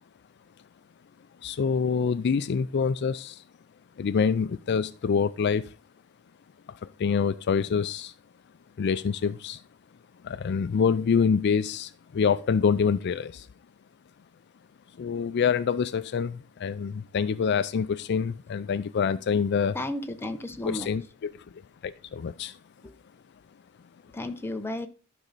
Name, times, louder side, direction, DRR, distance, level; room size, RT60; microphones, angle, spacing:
voice 1, 1.4-3.4 4.0-5.7 6.7-8.1 8.8-9.6 10.2-13.5 15.0-19.8 20.6-21.3 21.8-22.6, left 6 dB, 55° left, 15 dB, 0.4 m, -26 dB
voice 2, 19.7-20.9 22.8-22.9 24.1-24.9, left 1 dB, 10° left, 6 dB, 0.7 m, -33 dB
12.0 x 5.5 x 4.0 m, 0.34 s
head